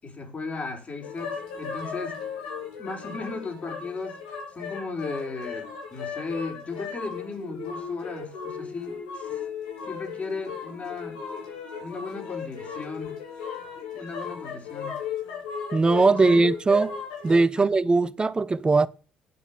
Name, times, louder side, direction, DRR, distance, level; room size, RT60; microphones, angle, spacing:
voice 1, 0.0-2.2 2.8-9.4 9.9-11.2 11.8-13.2 13.9-15.0 15.9-16.5 17.6-17.7, left 4 dB, 35° left, 4.6 m, -36 dB
sound 1, 1.0-17.5, left 6 dB, 75° left, 3.7 m, -36 dB
voice 2, 15.7-17.0 17.2-18.9, right 3 dB, 25° right, 0.8 m, -20 dB
9.7 x 8.2 x 7.0 m
figure-of-eight pair, 50°, 4 cm